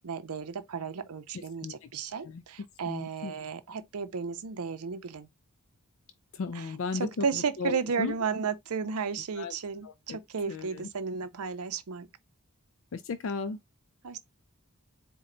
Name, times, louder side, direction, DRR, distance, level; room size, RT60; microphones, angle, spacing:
voice 1, 0.0-5.3 7.0-12.1 14.0-14.2, right 5 dB, 80° right, 0.6 m, -33 dB
voice 2, 1.3-1.9 2.2-2.4 2.8-3.3 6.3-8.1 9.4-9.5 9.8-10.2 10.5-10.9 12.9-13.6, left 4 dB, 60° left, 0.4 m, -36 dB
4.3 x 2.2 x 3.8 m
head